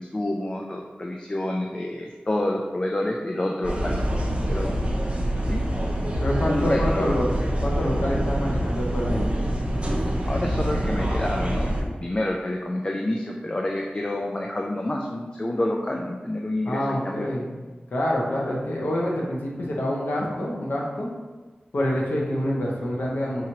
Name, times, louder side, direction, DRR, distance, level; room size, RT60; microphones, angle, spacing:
voice 1, 0.0-3.9 4.5-4.7 5.5-5.7 6.5-7.3 10.2-17.3, left 1 dB, 25° left, 0 dB, 0.4 m, -28 dB
sound 1, 3.6-11.8, equal, 35° right, 0.7 m, -25 dB
voice 2, 6.2-7.2 7.6-9.2 16.6-17.6 17.9-21.1 21.7-23.5, left 1 dB, 75° left, -3 dB, 0.8 m, -26 dB
4.7 x 3.0 x 2.8 m, 1.2 s
wide cardioid pair, 80°, 3 cm